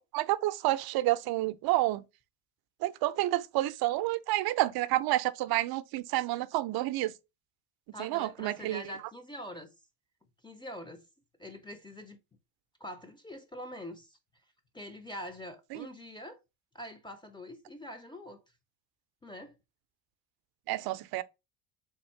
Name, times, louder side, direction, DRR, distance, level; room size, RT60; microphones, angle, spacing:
voice 1, 0.0-2.0 2.8-7.1 8.0-8.8 15.7-15.9 20.7-21.2, right 17 dB, 50° right, 0.5 m, -29 dB
voice 2, 7.9-9.7 10.4-11.1 11.4-12.2 12.8-14.2 14.7-16.4 16.7-18.4 19.2-19.6, equal, 10° left, 0.6 m, -44 dB
3.6 x 2.4 x 4.3 m
supercardioid pair, 90°, 48 cm